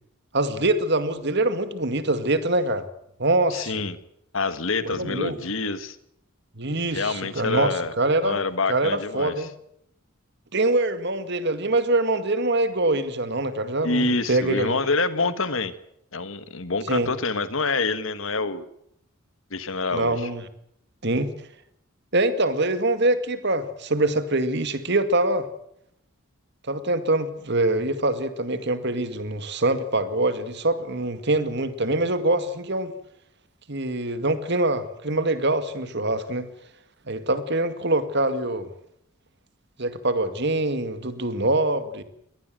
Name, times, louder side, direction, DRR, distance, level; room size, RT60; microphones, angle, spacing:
voice 1, 0.3-2.9 3.2-3.8 5.0-5.4 6.6-7.7 8.0-8.4 8.7-9.5 10.5-14.8 16.9-17.1 19.9-20.4 21.0-21.3 22.1-25.5 26.7-32.9 33.7-36.5 37.1-38.7 39.8-42.0, right 2 dB, 50° right, 11 dB, 2.1 m, -24 dB
voice 2, 3.5-4.0 4.3-6.0 6.9-7.9 8.2-9.5 13.8-15.7 16.1-18.6 19.5-20.3, left 3 dB, 65° left, 12 dB, 1.7 m, -26 dB
23.5 x 18.5 x 7.7 m, 0.74 s
head